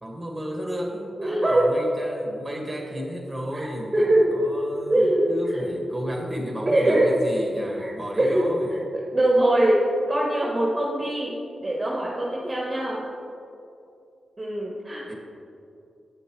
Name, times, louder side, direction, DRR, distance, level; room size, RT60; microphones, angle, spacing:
voice 1, 0.0-8.8 15.0-15.1, equal, 10° right, 0 dB, 2.0 m, -33 dB
voice 2, 1.2-1.7 3.5-3.7 3.9-4.3 4.9-5.3 6.6-7.1 7.8-7.9 8.2-9.8 10.1-11.3 11.6-13.0 14.4-15.1, right 1 dB, 25° right, -4 dB, 1.3 m, -22 dB
8.7 x 7.7 x 3.3 m, 2.7 s
supercardioid pair, 45°, 0 cm